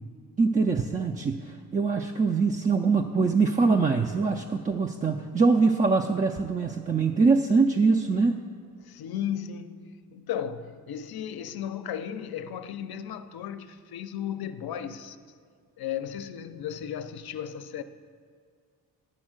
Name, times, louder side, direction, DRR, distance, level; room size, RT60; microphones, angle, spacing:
voice 1, 0.4-8.4, right 4 dB, 20° right, 0.3 m, -23 dB
voice 2, 8.8-15.2 15.8-17.8, left 9 dB, 65° left, 0.6 m, -35 dB
10.0 x 3.6 x 6.3 m
cardioid pair, 60°, 40 cm